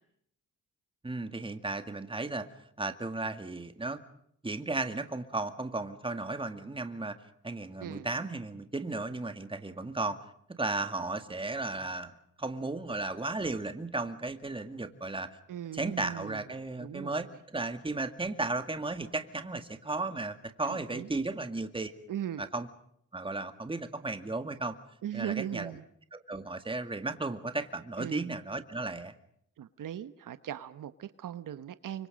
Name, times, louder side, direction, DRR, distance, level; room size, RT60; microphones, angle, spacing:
voice 1, 1.0-2.5 2.8-4.0 4.4-7.2 7.4-10.2 10.6-12.1 12.4-15.3 15.7-21.9 22.4-22.7 23.1-24.8 25.1-25.7 26.1-29.1, right 2 dB, 15° right, 8 dB, 2.2 m, -35 dB
voice 2, 15.5-16.4 16.8-17.4 20.6-21.1 22.1-22.4 25.0-25.8 28.0-28.3 29.6-32.1, right 10 dB, 80° right, 13 dB, 1.2 m, -39 dB
29.5 x 25.0 x 5.3 m, 0.69 s
cardioid pair, 110°, 32 cm